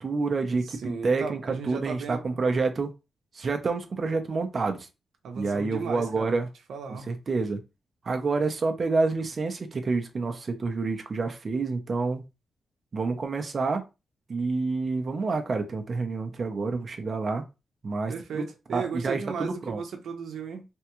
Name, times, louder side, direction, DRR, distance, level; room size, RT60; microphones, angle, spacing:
voice 1, 0.0-2.9 3.3-4.9 5.4-6.5 7.1-7.6 8.0-12.3 12.9-13.8 14.3-17.4 17.8-19.8, right 3 dB, 40° right, 0.6 m, -28 dB
voice 2, 0.8-2.3 5.2-6.4 6.7-7.1 18.1-20.6, right 5 dB, 85° right, 0.7 m, -35 dB
3.4 x 2.3 x 2.9 m
wide cardioid pair, 125°, 0 cm